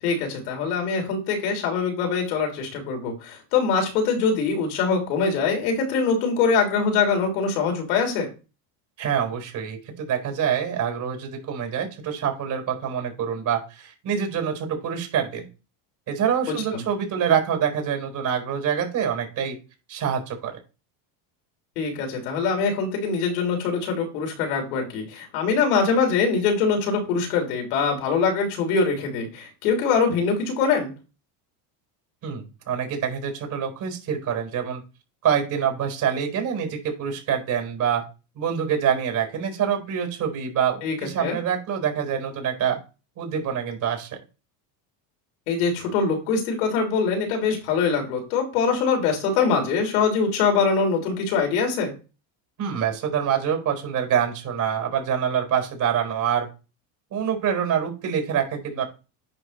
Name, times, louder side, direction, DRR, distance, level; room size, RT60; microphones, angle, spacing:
voice 1, 0.0-8.3 16.5-16.8 21.8-30.9 40.8-41.4 45.5-51.9, left 5 dB, 90° left, 2 dB, 3.5 m, -23 dB
voice 2, 9.0-15.5 16.1-19.6 19.9-20.6 32.2-34.8 35.2-38.0 38.4-42.8 43.2-44.1 52.6-56.5 57.1-58.9, right 8 dB, 45° right, 3 dB, 4.5 m, -26 dB
10.0 x 5.9 x 3.3 m, 0.32 s
cardioid pair, 130°, 45 cm